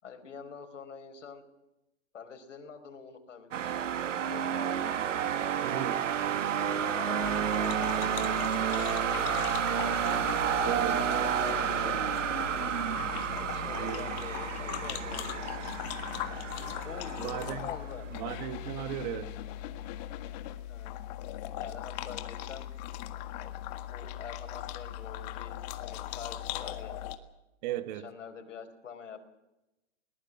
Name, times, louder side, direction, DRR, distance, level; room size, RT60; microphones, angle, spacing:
voice 1, 0.0-1.4 2.1-3.8 4.3-5.0 6.6-9.0 9.7-12.4 13.3-15.7 16.8-18.1 20.7-20.9 21.5-22.7 23.0-23.6 23.9-27.0 28.0-29.2, left 6 dB, 90° left, 5 dB, 4.9 m, -46 dB
sound 1, 3.5-18.4, right 9 dB, 90° right, 1.5 m, -31 dB
voice 2, 5.6-6.0 10.6-11.1 13.7-14.2 17.2-17.7 18.1-19.3 27.6-28.1, right 12 dB, 35° right, 13 dB, 1.2 m, -36 dB
sound 2, 7.2-27.2, left 13 dB, 35° left, 1.8 m, -39 dB
22.0 x 20.0 x 7.5 m, 0.95 s
hypercardioid pair, 155°, 36 cm